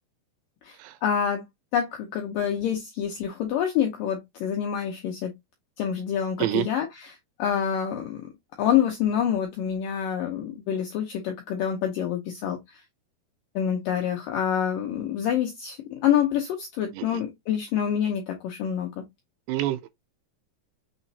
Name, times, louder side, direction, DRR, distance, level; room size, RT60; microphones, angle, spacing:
voice 1, 0.6-1.4 1.7-5.3 5.8-6.9 7.4-8.2 8.6-12.8 13.6-18.9, left 9 dB, 85° left, 1.9 m, -27 dB
voice 2, 19.5-20.0, right 14 dB, 85° right, 2.6 m, -28 dB
6.2 x 3.0 x 2.7 m
omnidirectional pair, 4.9 m